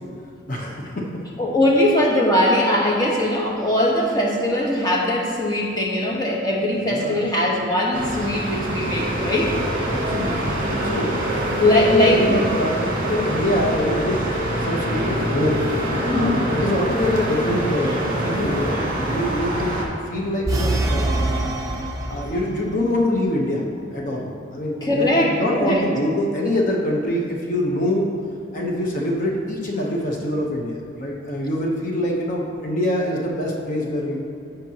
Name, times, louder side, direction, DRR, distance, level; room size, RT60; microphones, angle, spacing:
voice 1, 0.5-1.1 6.8-7.2 9.9-11.2 11.8-15.7 16.1-21.4 22.1-23.6 23.9-28.1 28.5-34.2, left 1 dB, 40° left, -1 dB, 0.9 m, -25 dB
voice 2, 1.4-9.5 11.6-12.4 16.0-16.4 24.8-25.8, left 1 dB, 20° left, -2 dB, 1.1 m, -20 dB
sound 1, 7.9-19.8, right 1 dB, 45° right, 1.6 m, -25 dB
sound 2, 20.5-22.7, right 2 dB, 15° right, 0.6 m, -24 dB
15.5 x 5.3 x 2.9 m, 2.4 s
head